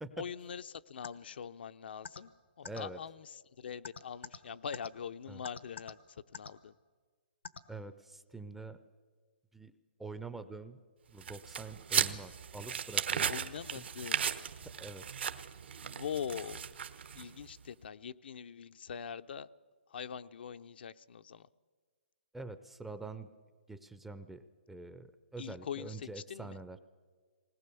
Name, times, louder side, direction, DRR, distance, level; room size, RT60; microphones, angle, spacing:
voice 1, 0.2-2.3 2.6-6.0 6.3-6.7 13.3-14.3 15.8-16.6 17.2-19.5 19.9-21.5 25.4-26.5, left 7 dB, 65° left, 11 dB, 0.6 m, -43 dB
sound 1, 1.0-1.1 2.0-2.2 2.6-2.8 3.8-4.4 4.7-4.9 5.4-5.9 6.3-6.5 7.4-7.6, left 6 dB, 90° left, 1.2 m, -43 dB
voice 2, 2.6-3.0 5.3-5.4 7.7-8.8 9.5-9.7 10.0-10.8 11.1-13.4 13.8-13.9 14.8-15.1 22.3-23.3 23.7-24.4 24.7-26.8, right 3 dB, 5° right, 11 dB, 0.5 m, -45 dB
sound 2, 11.2-17.4, right 8 dB, 70° right, 1.1 m, -36 dB
20.0 x 19.5 x 6.9 m, 1.5 s
hypercardioid pair, 160°, 6 cm